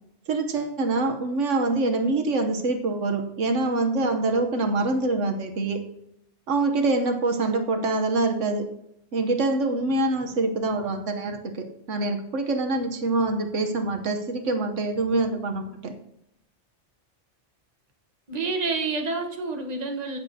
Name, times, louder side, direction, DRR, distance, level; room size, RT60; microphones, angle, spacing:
voice 1, 0.3-5.8 6.5-8.6 9.1-15.9, right 2 dB, 80° right, 5 dB, 1.3 m, -25 dB
voice 2, 18.3-20.2, right 3 dB, 35° right, 3 dB, 1.3 m, -28 dB
16.0 x 7.5 x 2.8 m, 0.81 s
omnidirectional pair, 1.3 m